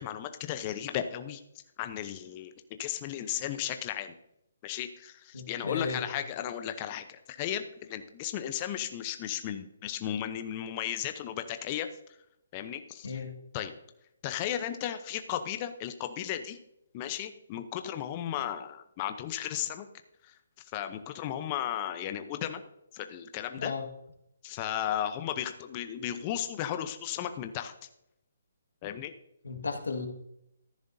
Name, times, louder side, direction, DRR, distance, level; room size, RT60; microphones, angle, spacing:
voice 1, 0.0-1.4 1.8-2.5 2.8-4.1 4.6-11.9 12.5-13.2 13.5-13.7 14.2-16.6 16.9-19.9 20.2-20.3 20.7-22.6 22.9-23.7 24.4-27.7 28.8-29.1, left 11 dB, 30° left, 8 dB, 0.7 m, -35 dB
voice 2, 5.3-6.1 13.0-13.3 23.6-23.9 29.4-30.1, left 4 dB, 85° left, 4 dB, 1.7 m, -34 dB
14.0 x 10.5 x 2.7 m, 0.80 s
hypercardioid pair, 150°, 0 cm